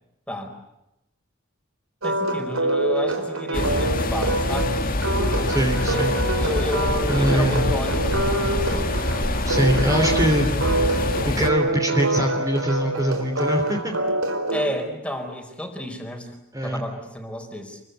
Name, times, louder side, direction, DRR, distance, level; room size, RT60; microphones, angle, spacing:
voice 1, 2.0-4.8 5.9-6.1 6.4-8.9 14.5-16.3 16.6-17.8, left 1 dB, 5° left, 4 dB, 4.5 m, -31 dB
sound 1, 2.0-14.7, right 2 dB, 80° right, 4.6 m, -26 dB
sound 2, 3.5-11.5, left 1 dB, 45° left, 2.2 m, -25 dB
voice 2, 5.5-6.1 7.1-7.6 9.4-10.8 11.2-13.9 16.5-16.8, equal, 15° right, 2 dB, 3.3 m, -23 dB
28.5 x 24.0 x 8.3 m, 0.87 s
head